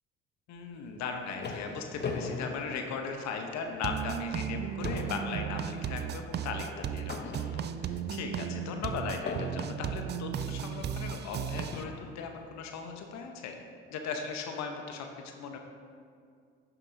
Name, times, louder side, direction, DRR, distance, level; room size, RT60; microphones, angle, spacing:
voice 1, 0.5-13.5 13.9-15.6, left 5 dB, 60° left, 4 dB, 1.0 m, -38 dB
sound 1, 0.9-3.5 4.0-4.2 4.5-8.0 9.3-10.0 10.9-11.0 11.7-12.2, left 4 dB, 35° left, 0.9 m, -40 dB
sound 2, 3.8-11.8, right 8 dB, 35° right, 0.4 m, -35 dB
11.0 x 6.9 x 2.7 m, 2.2 s
hypercardioid pair, 55°, 30 cm